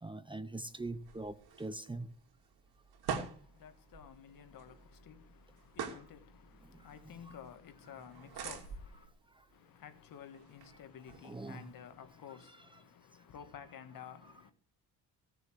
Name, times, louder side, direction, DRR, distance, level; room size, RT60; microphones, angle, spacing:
voice 1, 0.0-2.1 7.3-7.4 11.2-11.6, right 2 dB, 15° right, 0.8 m, -42 dB
sound 1, 0.7-12.0, right 6 dB, 80° right, 2.7 m, -47 dB
voice 2, 3.2-9.1 9.5-14.5, left 8 dB, 65° left, 1.7 m, -53 dB
17.0 x 6.8 x 4.7 m
cardioid pair, 110°, 37 cm